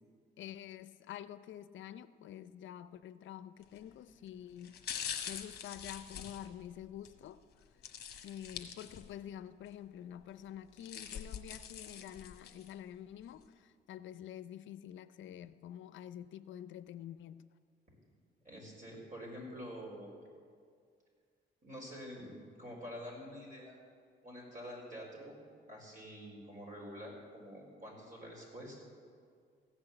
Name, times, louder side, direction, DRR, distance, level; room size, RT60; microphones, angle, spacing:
voice 1, 0.4-4.8 5.3-7.4 8.2-17.5, left 10 dB, 70° left, 14 dB, 0.5 m, -48 dB
sound 1, 3.6-3.9 4.6-7.1 7.8-9.3 9.7-9.8 10.5-12.7 13.2-13.3, left 8 dB, 55° left, 1.1 m, -44 dB
voice 2, 18.4-20.2 21.6-22.3 22.6-23.9 24.2-25.3 25.7-28.8, equal, 40° right, -2 dB, 4.5 m, -47 dB
15.5 x 6.2 x 8.9 m, 2.1 s
cardioid pair, 90°, 20 cm